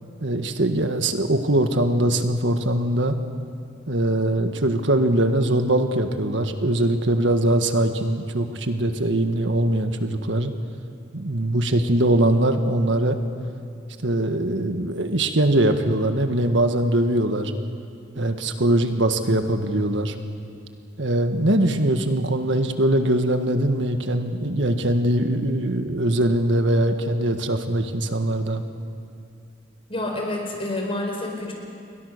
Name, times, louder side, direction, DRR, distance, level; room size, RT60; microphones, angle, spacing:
voice 1, 0.2-3.2 3.9-10.5 11.1-13.2 14.0-17.5 18.2-20.1 21.0-28.6, right 1 dB, 75° right, 7 dB, 1.7 m, -22 dB
voice 2, 29.9-31.5, left 1 dB, 30° left, 1 dB, 4.7 m, -28 dB
29.0 x 22.0 x 6.7 m, 2.5 s
head